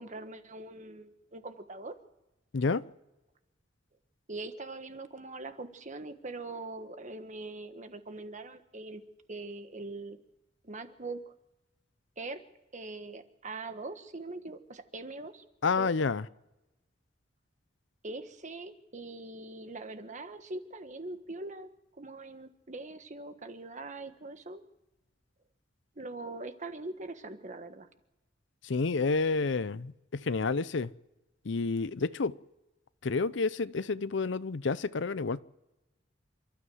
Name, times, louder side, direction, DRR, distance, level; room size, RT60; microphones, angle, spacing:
voice 1, 0.0-1.9 4.3-9.0 9.3-10.2 10.6-11.3 12.2-12.4 12.7-15.4 15.7-15.9 18.0-21.7 22.0-24.6 25.9-27.9, right 2 dB, 40° right, 1.4 m, -42 dB
voice 2, 2.5-2.9 15.6-16.3 28.6-30.9 31.4-32.4 33.0-35.4, left 4 dB, 65° left, 0.6 m, -29 dB
28.5 x 13.0 x 7.8 m
head